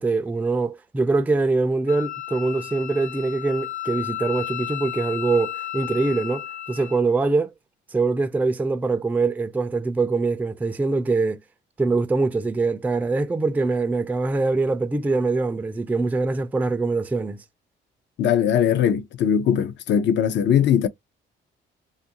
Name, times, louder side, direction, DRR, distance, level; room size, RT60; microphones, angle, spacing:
voice 1, 0.0-7.5 7.9-11.4 11.8-17.4, right 3 dB, 10° right, 0.3 m, -23 dB
Wind instrument woodwind instrument, 1.9-7.0, left 12 dB, 40° left, 0.9 m, -33 dB
voice 2, 18.2-20.9, left 9 dB, 65° left, 0.5 m, -20 dB
2.5 x 2.4 x 2.7 m
cardioid pair, 90°, 20 cm